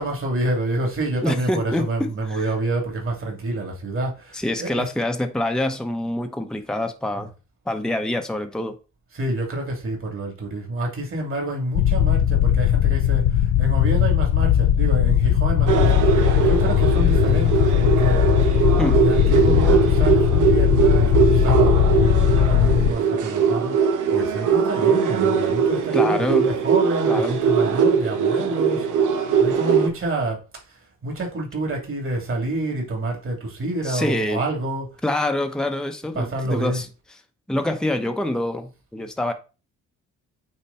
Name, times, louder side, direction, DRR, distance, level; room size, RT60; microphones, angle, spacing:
voice 1, 0.0-4.9 7.2-7.3 9.1-18.3 18.9-30.4 31.0-34.9 36.1-36.8, right 2 dB, 45° right, 3.1 m, -28 dB
voice 2, 1.2-2.5 4.3-7.3 7.7-8.8 18.8-19.0 25.9-26.5 27.1-27.4 33.8-34.4 35.0-36.9 37.5-39.3, left 1 dB, ahead, 0.9 m, -25 dB
sound 1, 11.7-22.9, left 11 dB, 80° left, 0.8 m, -18 dB
sound 2, 15.7-29.9, right 6 dB, 80° right, 1.1 m, -21 dB
8.9 x 3.3 x 4.3 m
cardioid pair, 90°, 30 cm